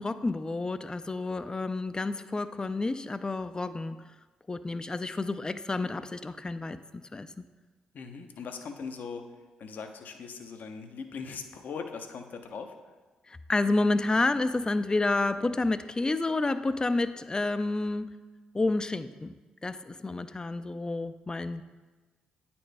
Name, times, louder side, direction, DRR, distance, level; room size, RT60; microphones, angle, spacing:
voice 1, 0.0-4.0 4.5-7.3 13.3-18.1 18.5-19.3 19.6-21.6, left 2 dB, 25° left, 12 dB, 0.4 m, -29 dB
voice 2, 7.9-9.3 9.6-12.7, left 5 dB, 60° left, 6 dB, 0.6 m, -40 dB
9.1 x 4.3 x 3.3 m, 1.3 s
hypercardioid pair, 50°, 3 cm